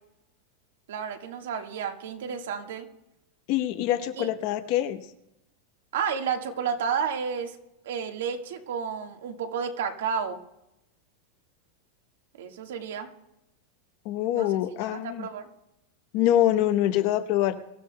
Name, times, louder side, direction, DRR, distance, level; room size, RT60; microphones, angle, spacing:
voice 1, 0.9-2.9 4.2-4.3 5.9-7.5 7.8-10.4 12.4-13.1 14.3-14.5 14.8-15.5, right 7 dB, 80° right, 5 dB, 1.6 m, -31 dB
voice 2, 3.5-5.0 14.0-15.3 16.1-17.6, left 12 dB, 40° left, 9 dB, 0.8 m, -25 dB
24.5 x 14.0 x 2.2 m, 0.88 s
supercardioid pair, 175°, 0 cm